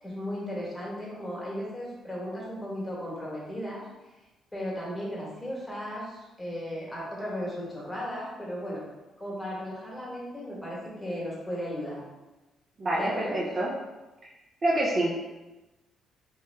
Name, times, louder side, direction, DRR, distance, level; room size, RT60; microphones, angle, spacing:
voice 1, 0.0-3.8 4.5-8.8 9.2-12.0 13.0-13.4, equal, 15° left, -6 dB, 1.3 m, -35 dB
voice 2, 12.8-13.7 14.6-15.1, right 1 dB, 40° right, -4 dB, 0.6 m, -26 dB
3.1 x 2.2 x 3.2 m, 1.1 s
cardioid pair, 90°, 0 cm